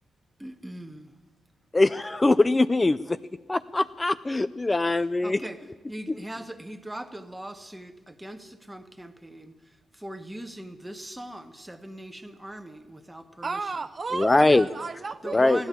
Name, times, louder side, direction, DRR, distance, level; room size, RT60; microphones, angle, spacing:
voice 1, 0.4-1.1 5.2-5.6 5.9-9.6 9.9-13.6 15.2-15.7, right 1 dB, 10° right, 7 dB, 1.5 m, -40 dB
voice 2, 1.7-3.2 3.5-5.5 6.1-6.2 14.1-14.7 15.3-15.7, left 2 dB, 25° left, 12 dB, 0.4 m, -22 dB
voice 3, 13.4-15.7, right 4 dB, 40° right, 10 dB, 0.6 m, -34 dB
15.0 x 11.0 x 8.5 m, 1.3 s
supercardioid pair, 55°, 0 cm